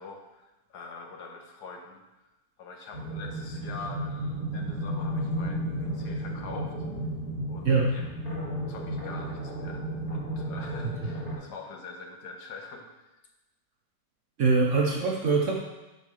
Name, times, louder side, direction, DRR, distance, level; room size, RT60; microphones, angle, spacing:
voice 1, 0.0-2.0 2.6-6.7 7.5-8.1 8.7-12.9, left 4 dB, 65° left, 2 dB, 1.4 m, -44 dB
sound 1, 2.9-11.4, right 1 dB, 20° left, 1.7 m, -33 dB
voice 2, 7.6-8.0 14.4-15.6, right 4 dB, 60° right, -1 dB, 0.9 m, -23 dB
8.2 x 4.6 x 4.9 m, 1.0 s
omnidirectional pair, 2.0 m